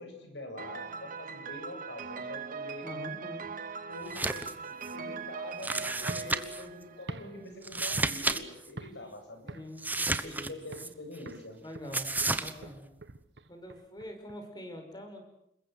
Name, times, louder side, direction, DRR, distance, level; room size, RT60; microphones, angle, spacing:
voice 1, 0.0-2.9 3.9-9.6 10.2-11.6, left 1 dB, 85° left, 5 dB, 7.8 m, -45 dB
Piano, 0.6-7.4, right 5 dB, 50° right, 1.9 m, -41 dB
voice 2, 2.8-3.5 9.0-9.2 9.5-10.5 11.6-12.1 12.4-12.8 13.5-15.2, left 1 dB, 25° left, 5 dB, 5.7 m, -44 dB
sound 1, 4.0-4.5 4.8-4.9 5.6-6.6 7.6-8.4 8.6-8.7 9.8-10.9 11.9-12.5, right 2 dB, 10° right, 1.2 m, -31 dB
sound 2, 6.0-8.4 8.8-9.1 9.5-10.4 10.7-11.0 11.3-14.4, right 2 dB, 75° right, 1.2 m, -45 dB
27.0 x 22.0 x 7.9 m, 0.82 s
head